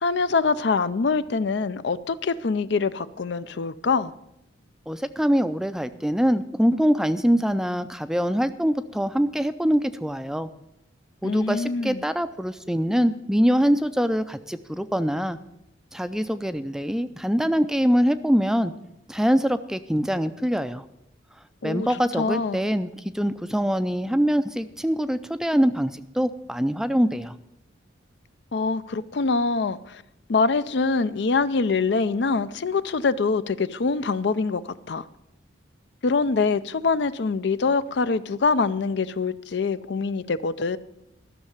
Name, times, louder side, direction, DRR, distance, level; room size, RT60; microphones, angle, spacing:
voice 1, 0.0-4.1 11.2-12.0 21.6-21.9 22.2-22.6 28.5-30.0 30.3-35.0 36.0-40.8, left 4 dB, 65° left, 0.5 m, -24 dB
voice 2, 4.9-10.5 11.2-15.4 15.9-18.7 19.1-20.8 21.6-27.3, equal, 5° right, 0.4 m, -24 dB
13.0 x 6.6 x 8.7 m
head